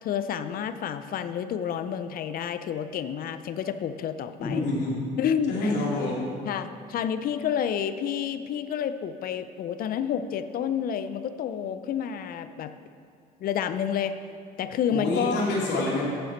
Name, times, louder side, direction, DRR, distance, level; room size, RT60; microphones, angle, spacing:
voice 1, 0.0-4.6 5.2-5.7 6.5-12.7 13.4-14.2 14.6-15.5, left 8 dB, 55° left, 11 dB, 0.5 m, -29 dB
voice 2, 4.4-5.1 5.5-6.3 14.9-16.1, left 2 dB, 80° left, -4 dB, 2.5 m, -27 dB
10.0 x 6.9 x 4.5 m, 2.2 s
supercardioid pair, 85°, 18 cm